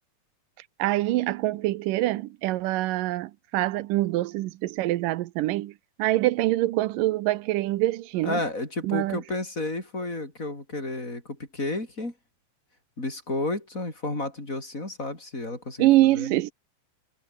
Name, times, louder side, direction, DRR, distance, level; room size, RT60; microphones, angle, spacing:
voice 1, 0.8-8.4 8.8-9.2 15.8-16.5, right 16 dB, 80° right, 2.4 m, -25 dB
voice 2, 8.2-12.1 13.0-16.3, left 2 dB, 20° left, 6.4 m, -32 dB
omnidirectional pair, 3.9 m